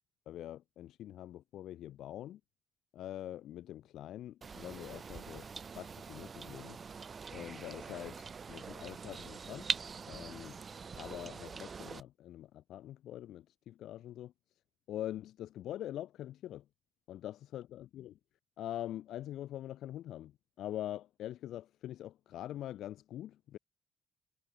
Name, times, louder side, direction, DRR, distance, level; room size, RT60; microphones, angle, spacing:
voice 1, 0.3-2.4 2.9-5.4 5.7-6.8 7.3-9.7 10.1-10.6 10.9-14.3 14.9-16.6 17.1-18.2 18.6-20.3 20.6-23.6, left 12 dB, 80° left, 0.8 m, -44 dB
sound 1, 4.4-12.0, right 5 dB, 40° right, 0.6 m, -43 dB
cardioid pair, 90°, 0 cm